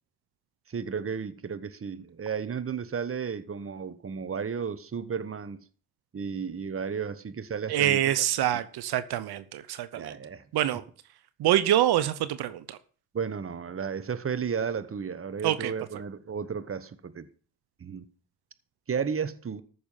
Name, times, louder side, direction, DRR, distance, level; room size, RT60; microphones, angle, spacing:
voice 1, 0.7-5.6 6.1-8.1 10.0-10.4 13.1-17.3 17.8-18.0 18.9-19.6, right 6 dB, 35° right, 1.1 m, -33 dB
voice 2, 7.7-10.1 10.5-10.8 11.4-12.8 15.4-15.7, right 12 dB, 85° right, 0.8 m, -25 dB
14.0 x 6.2 x 5.6 m
cardioid pair, 75°, 37 cm